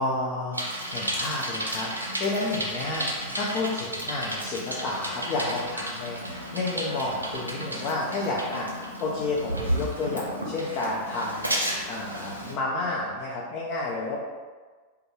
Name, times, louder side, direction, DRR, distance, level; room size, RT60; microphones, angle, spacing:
voice 1, 0.0-14.2, left 2 dB, 40° left, -4 dB, 0.4 m, -31 dB
Bicycle, 0.5-12.5, right 1 dB, 85° right, 0.4 m, -33 dB
2.2 x 2.2 x 3.1 m, 1.4 s
figure-of-eight pair, 90°, 0 cm